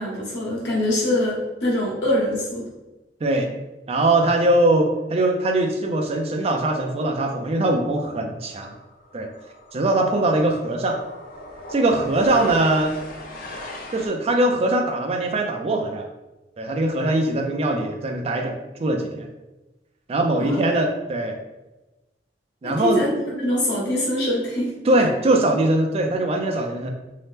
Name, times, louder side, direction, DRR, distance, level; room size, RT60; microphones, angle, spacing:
voice 1, 0.0-2.7 20.4-20.6 22.6-24.7 25.0-25.1, left 1 dB, 85° left, -4 dB, 1.1 m, -24 dB
voice 2, 3.2-3.5 3.9-8.7 9.1-9.3 9.7-11.0 11.7-12.9 13.9-16.0 16.6-19.3 20.1-21.4 22.6-23.1 24.9-26.9, right 2 dB, 35° right, 3 dB, 0.4 m, -21 dB
sound 1, 7.3-7.5 7.8-14.1, left 1 dB, 55° left, 0.5 m, -39 dB
2.8 x 2.0 x 3.3 m, 1.1 s
head